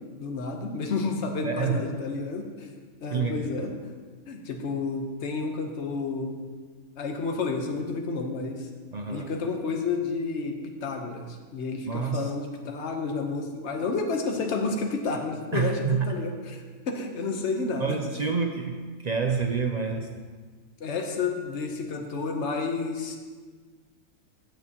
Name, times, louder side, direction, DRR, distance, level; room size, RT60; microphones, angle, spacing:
voice 1, 0.2-2.7 3.0-3.7 4.3-6.3 7.0-8.7 9.1-10.5 10.8-11.3 11.5-18.3 20.8-23.2, left 4 dB, 55° left, 3 dB, 1.2 m, -30 dB
voice 2, 1.4-1.8 3.1-3.4 8.9-9.3 11.9-12.3 15.5-16.2 17.8-20.2, right 5 dB, 65° right, 3 dB, 0.4 m, -28 dB
15.5 x 6.8 x 2.9 m, 1.5 s
omnidirectional pair, 1.4 m